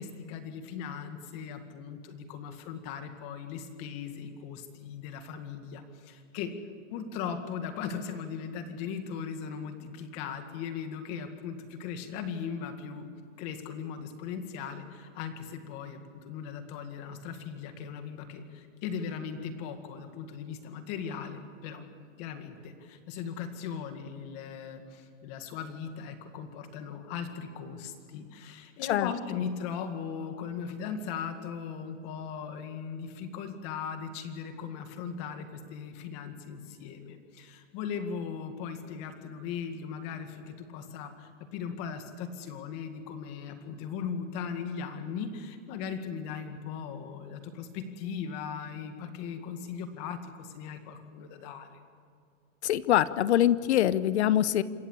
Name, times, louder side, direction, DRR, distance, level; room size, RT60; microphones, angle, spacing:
voice 1, 0.0-6.5 6.9-13.1 13.4-21.8 22.2-51.8, left 7 dB, 30° left, 7 dB, 2.0 m, -38 dB
voice 2, 52.6-54.6, left 12 dB, 60° left, 16 dB, 0.9 m, -24 dB
27.0 x 14.5 x 8.4 m, 2.4 s
supercardioid pair, 170°, 38 cm